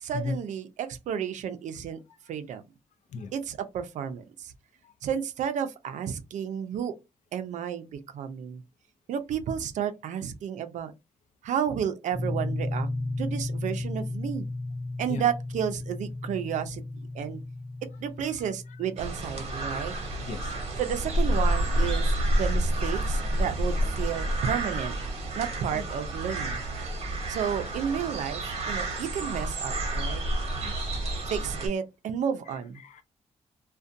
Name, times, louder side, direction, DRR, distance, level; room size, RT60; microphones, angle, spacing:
voice 1, 0.0-2.0 2.3-2.6 3.3-4.5 5.0-6.9 7.3-8.6 9.1-10.9 11.4-12.9 13.2-14.5 15.0-16.8 17.1-17.4 18.0-19.9 20.8-24.9 25.4-26.6 27.3-30.2 31.3-32.8, right 8 dB, 80° right, 0.4 m, -32 dB
sound 1, 12.1-22.3, left 2 dB, 5° right, 0.7 m, -35 dB
sound 2, 19.0-31.7, right 1 dB, 55° right, 0.8 m, -29 dB
voice 2, 20.2-20.5 25.7-25.8 30.6-30.9 32.8-33.0, left 4 dB, 80° left, 0.5 m, -36 dB
2.5 x 2.2 x 2.5 m
wide cardioid pair, 150°, 12 cm